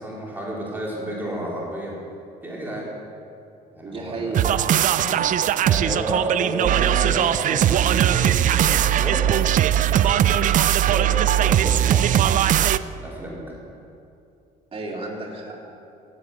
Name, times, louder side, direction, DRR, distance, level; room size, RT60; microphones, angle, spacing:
voice 1, 0.0-1.9 2.4-2.9 3.7-4.6 5.0-9.3 9.7-12.5 12.9-13.6, right 1 dB, 10° right, -5 dB, 4.3 m, -32 dB
voice 2, 3.8-4.5 14.7-15.6, right 3 dB, 30° right, -3 dB, 3.5 m, -32 dB
sound 1, 4.3-12.8, right 11 dB, 50° right, 0.5 m, -19 dB
17.0 x 8.5 x 8.1 m, 2.7 s
cardioid pair, 110°, 17 cm